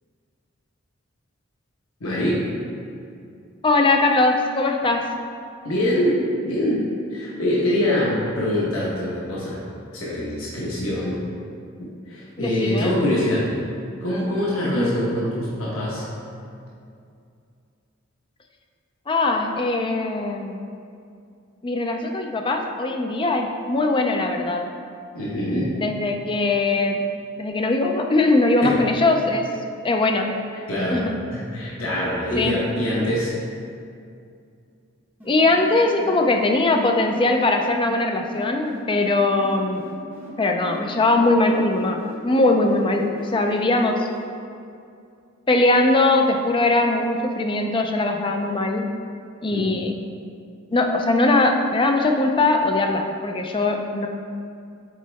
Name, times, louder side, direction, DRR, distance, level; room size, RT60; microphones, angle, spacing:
voice 1, 2.0-2.5 5.6-9.6 9.9-11.2 11.8-13.5 14.0-16.0 25.1-25.8 28.6-28.8 30.7-31.0 31.3-33.3 49.5-49.8, left 1 dB, 85° left, -6 dB, 1.1 m, -24 dB
voice 2, 3.6-5.1 12.4-12.9 14.7-15.0 19.1-20.6 21.6-24.7 25.8-27.1 27.4-29.4 29.8-30.3 30.9-31.2 32.4-32.6 35.2-39.8 40.4-44.1 45.5-48.9 49.4-50.0 50.7-54.1, left 2 dB, 25° left, 3 dB, 0.4 m, -21 dB
sound 1, 35.2-37.5 38.2-40.3 40.6-44.2, equal, 10° right, 1.3 m, -40 dB
7.4 x 4.2 x 3.5 m, 2.4 s
head